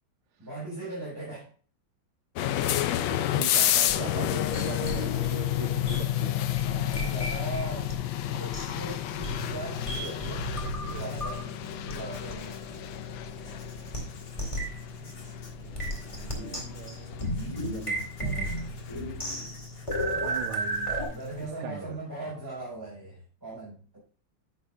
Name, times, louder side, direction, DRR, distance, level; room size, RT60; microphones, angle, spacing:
voice 1, 0.4-1.5 6.7-7.9 8.3-12.8 21.1-24.0, right 2 dB, 10° right, -8 dB, 4.3 m, -40 dB
sound 1, 2.4-19.1, left 13 dB, 75° left, 1.3 m, -31 dB
voice 2, 3.0-6.4 15.6-18.7 20.1-21.1 21.4-22.0, right 8 dB, 85° right, 3 dB, 1.7 m, -41 dB
sound 2, 3.5-7.9 8.2-11.5 11.9-12.0 12.3-12.4 13.2-13.3 13.9-14.0 14.4-14.8 15.7-21.1, right 1 dB, 15° left, 2.0 m, -34 dB
Writing, 4.5-21.5, left 3 dB, 55° left, 2.5 m, -45 dB
9.6 x 8.2 x 2.3 m, 0.40 s
omnidirectional pair, 2.3 m